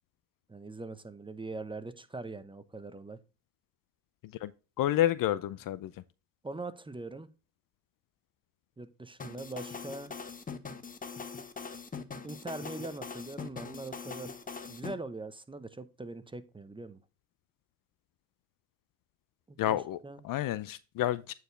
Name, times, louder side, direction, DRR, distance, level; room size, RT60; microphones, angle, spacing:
voice 1, 0.5-3.2 6.4-7.3 8.8-10.1 12.2-14.3 14.7-17.0 19.5-20.2, right 3 dB, 10° right, 0.7 m, -42 dB
voice 2, 4.8-5.9 19.6-20.0 20.2-21.3, left 13 dB, 45° left, 0.6 m, -29 dB
sound 1, 9.2-14.9, left 5 dB, 15° left, 0.9 m, -42 dB
8.9 x 4.7 x 3.2 m
supercardioid pair, 80°, 47 cm